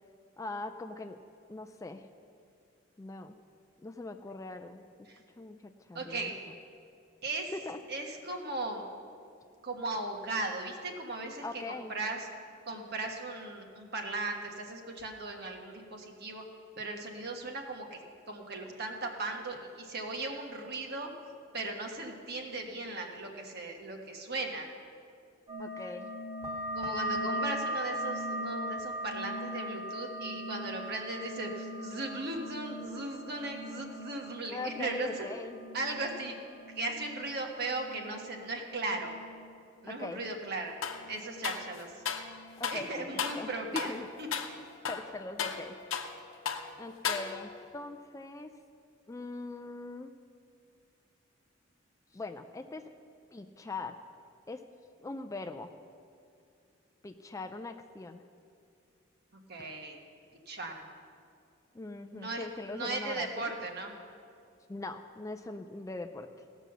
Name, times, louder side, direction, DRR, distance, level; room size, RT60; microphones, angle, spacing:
voice 1, 0.4-1.2 1.5-2.0 3.0-3.3 3.8-4.8 5.4-6.3 7.5-7.8 11.4-11.9 25.6-26.1 34.5-35.6 39.9-40.2 42.6-43.1 43.4-44.1 44.9-45.8 46.8-48.5 49.1-50.1 52.1-52.8 53.3-54.0 54.5-54.6 55.0-55.7 57.0-58.2 61.7-63.5 64.7-66.3, left 3 dB, 15° left, 7 dB, 0.3 m, -41 dB
voice 2, 5.9-6.4 7.2-7.5 7.9-8.8 9.6-12.3 12.7-16.4 16.8-21.1 21.5-24.7 26.7-35.3 35.7-36.4 36.7-39.1 39.8-40.8 41.1-42.0 42.7-43.9 44.2-44.3 59.5-60.0 60.5-60.8 62.1-62.4 62.7-63.9, right 2 dB, 50° right, 2 dB, 1.4 m, -37 dB
sound 1, 25.5-40.6 40.9-41.7 42.0-42.7 43.1-43.5, equal, 30° right, 1.9 m, -40 dB
sound 2, 40.8-41.0 41.4-42.3 42.6-42.9 43.2-43.5 43.8-44.0 44.3-44.5 44.8-46.2 46.5-46.7 47.0-47.6, left 6 dB, 80° left, 0.8 m, -35 dB
17.0 x 6.2 x 6.7 m, 2.4 s
head